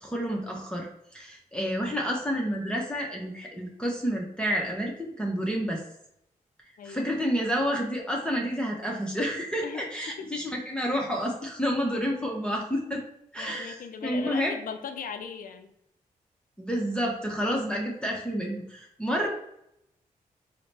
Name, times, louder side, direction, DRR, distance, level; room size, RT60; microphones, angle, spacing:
voice 1, 0.0-5.8 6.8-13.0 13.3-13.7 14.0-14.5 16.6-19.3, equal, 5° left, -2 dB, 0.8 m, -29 dB
voice 2, 6.8-7.1 9.6-10.3 13.4-15.7, left 6 dB, 65° left, 8 dB, 0.4 m, -39 dB
3.7 x 2.1 x 3.2 m, 0.78 s
supercardioid pair, 45°, 15 cm